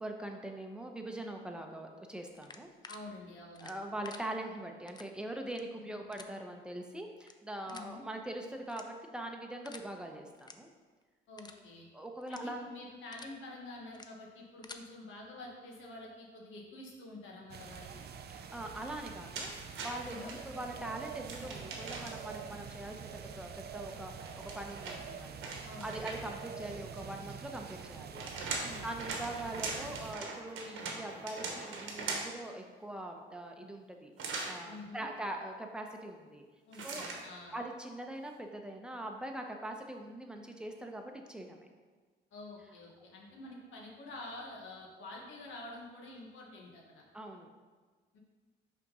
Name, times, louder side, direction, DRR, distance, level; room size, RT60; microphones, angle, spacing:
voice 1, 0.0-2.7 3.6-10.7 11.9-12.7 18.3-19.5 19.8-28.5 28.8-36.4 36.8-37.1 37.5-41.7 47.1-47.5, right 1 dB, 5° right, 3 dB, 0.8 m, -42 dB
sound 1, 2.4-3.0 3.5-4.2 4.9-5.1 5.4-5.6 6.1-6.3 7.2-7.3 7.7-7.9 8.7-9.1 9.6-9.9 10.3-10.5 10.9-11.0 11.4-11.6 12.2-12.4 12.9-13.3 13.9-14.1 14.4-14.8, left 4 dB, 20° left, 0.5 m, -50 dB
voice 2, 2.9-3.7 5.8-6.1 7.7-8.0 11.3-11.9 12.3-18.1 20.0-20.4 25.6-26.1 28.6-28.9 34.6-35.1 36.7-37.6 42.3-47.0 48.1-48.2, left 2 dB, 75° left, -2 dB, 1.4 m, -48 dB
sound 2, 17.5-30.1, right 6 dB, 55° right, 0.5 m, -46 dB
sound 3, 19.3-20.4 21.2-22.4 24.2-26.4 27.8-32.5 34.2-34.6 36.7-37.2, right 4 dB, 75° right, 1.1 m, -41 dB
5.6 x 3.6 x 5.4 m, 1.4 s
cardioid pair, 90°, 20 cm